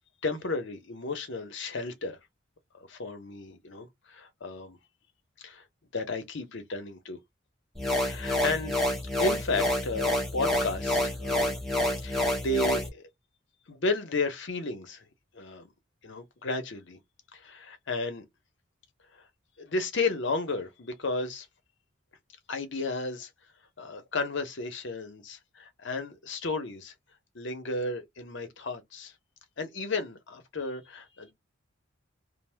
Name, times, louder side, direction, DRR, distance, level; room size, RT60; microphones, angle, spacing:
voice 1, 0.2-2.2 2.8-4.8 5.4-5.6 5.9-7.2 7.9-8.8 9.2-11.5 12.0-13.1 13.7-15.0 15.3-15.7 16.0-17.0 17.3-18.2 19.6-21.5 22.5-23.3 23.8-26.9 27.3-29.1 29.6-31.3, left 3 dB, 60° left, 0.7 m, -33 dB
sound 1, 7.8-12.9, left 1 dB, ahead, 0.6 m, -28 dB
2.6 x 2.0 x 3.2 m
head